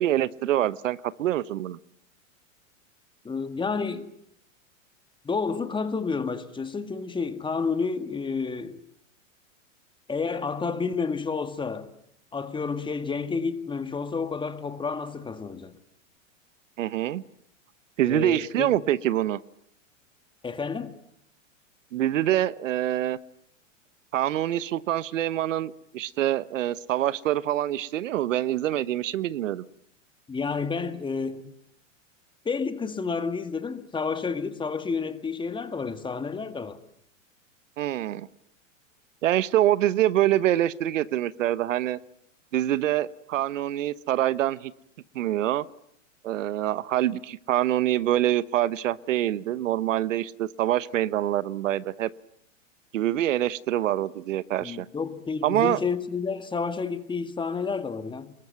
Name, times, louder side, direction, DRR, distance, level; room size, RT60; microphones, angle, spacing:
voice 1, 0.0-1.8 16.8-17.2 18.0-19.4 21.9-23.2 24.1-29.6 37.8-38.3 39.2-42.0 42.5-44.7 45.1-45.6 46.2-52.1 52.9-54.9 55.4-55.8, right 13 dB, 75° right, 1.1 m, -25 dB
voice 2, 3.2-4.1 5.2-8.8 10.1-11.9 12.3-15.7 18.0-18.7 20.4-20.9 30.3-31.5 32.4-36.8 54.6-58.3, left 5 dB, 10° left, 1.8 m, -30 dB
27.0 x 22.0 x 9.3 m
hypercardioid pair, 125°, 39 cm